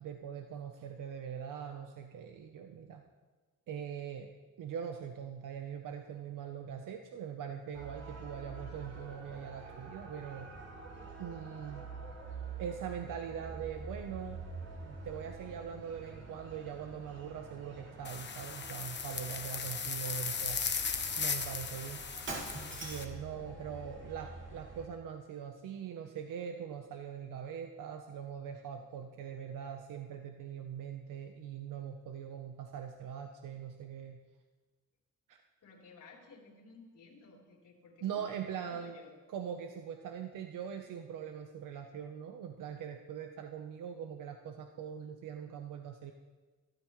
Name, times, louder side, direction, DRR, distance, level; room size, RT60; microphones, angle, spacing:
voice 1, 0.0-3.0 3.7-4.3 4.6-10.5 11.2-11.9 12.6-14.4 14.8-20.6 21.1-22.0 22.8-34.2 35.3-35.4 38.0-39.0 39.3-46.1, right 8 dB, 85° right, 4 dB, 1.0 m, -42 dB
sound 1, 7.7-24.9, right 4 dB, 55° right, 3.6 m, -47 dB
sound 2, 18.0-23.0, left 6 dB, 35° left, 1.1 m, -37 dB
Shatter, 22.3-23.2, right 2 dB, 40° right, 2.7 m, -41 dB
voice 2, 23.0-24.1 35.6-38.4 38.7-39.1, left 4 dB, 75° left, -2 dB, 3.9 m, -56 dB
23.5 x 13.0 x 3.2 m, 1.3 s
wide cardioid pair, 160°, 31 cm